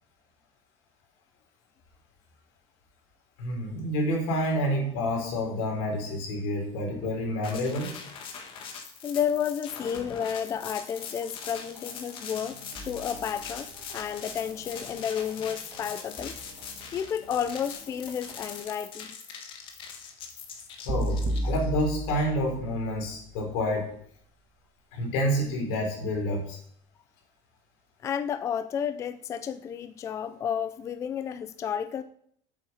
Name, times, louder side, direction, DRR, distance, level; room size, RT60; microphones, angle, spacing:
voice 1, 3.4-7.9 20.9-23.9 24.9-26.6, equal, 90° left, 1 dB, 3.9 m, -28 dB
sound 1, 7.4-21.9, left 6 dB, 40° left, 1.6 m, -42 dB
voice 2, 9.0-16.4 16.9-19.1 28.0-32.0, left 8 dB, 25° left, 12 dB, 0.4 m, -31 dB
sound 2, 10.5-18.6, equal, 10° right, 3.1 m, -50 dB
sound 3, 20.9-23.1, right 1 dB, 30° right, 1.3 m, -31 dB
8.5 x 7.5 x 5.5 m, 0.65 s
cardioid pair, 170°, 13 cm